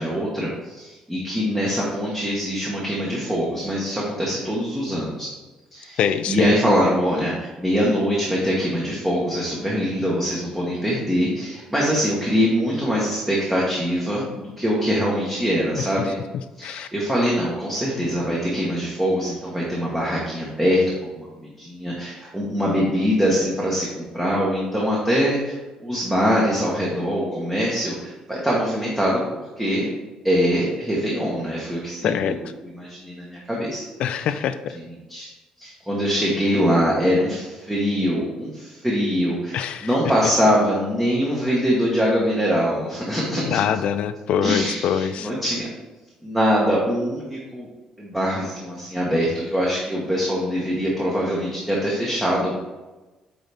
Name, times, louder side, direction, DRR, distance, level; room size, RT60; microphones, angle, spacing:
voice 1, 0.0-5.3 5.7-6.0 6.3-16.1 16.6-25.5 25.8-29.2 29.6-29.9 30.2-32.3 32.7-33.8 35.1-35.3 35.6-43.6 44.4-45.7 46.2-47.7 48.0-52.5, equal, 5° right, -5 dB, 1.1 m, -23 dB
voice 2, 6.0-6.5 15.8-15.9 16.6-16.9 32.0-32.4 34.0-34.8 39.5-39.9 43.5-45.3, left 8 dB, 60° left, 11 dB, 0.4 m, -24 dB
8.9 x 3.9 x 3.4 m, 1.1 s
cardioid pair, 165°, 2 cm